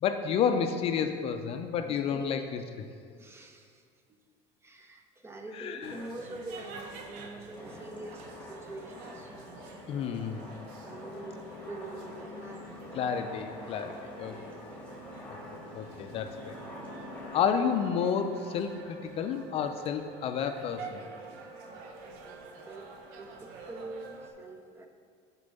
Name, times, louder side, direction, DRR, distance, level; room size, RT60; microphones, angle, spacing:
voice 1, 0.0-2.6 5.6-6.0 9.9-10.4 13.0-14.4 15.3-16.6 17.3-21.0, left 7 dB, 45° left, 7 dB, 0.4 m, -30 dB
voice 2, 1.8-2.9 3.1-3.8 4.2-4.3 4.6-9.3 10.8-12.9 13.8-14.6 22.6-24.9, right 2 dB, 15° right, 4 dB, 0.6 m, -45 dB
sound 1, 5.8-24.3, right 4 dB, 75° right, 0.8 m, -48 dB
sound 2, 7.5-17.4, left 1 dB, 10° left, 1.4 m, -46 dB
6.6 x 4.5 x 5.3 m, 2.1 s
cardioid pair, 135°, 14 cm